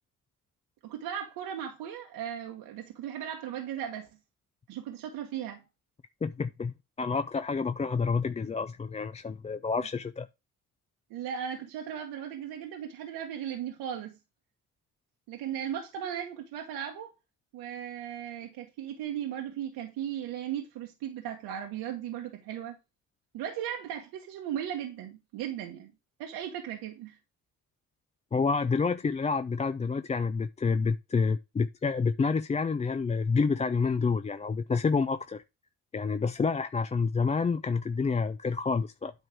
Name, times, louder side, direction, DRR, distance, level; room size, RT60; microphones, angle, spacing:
voice 1, 0.8-4.1 4.7-5.6 11.1-14.2 15.3-17.1 17.5-22.8 23.3-25.9 26.2-27.2, right 9 dB, 85° right, 1.2 m, -37 dB
voice 2, 6.2-10.3 28.3-35.4 35.9-39.1, left 4 dB, 20° left, 0.4 m, -28 dB
9.2 x 3.2 x 6.0 m
supercardioid pair, 70°, 37 cm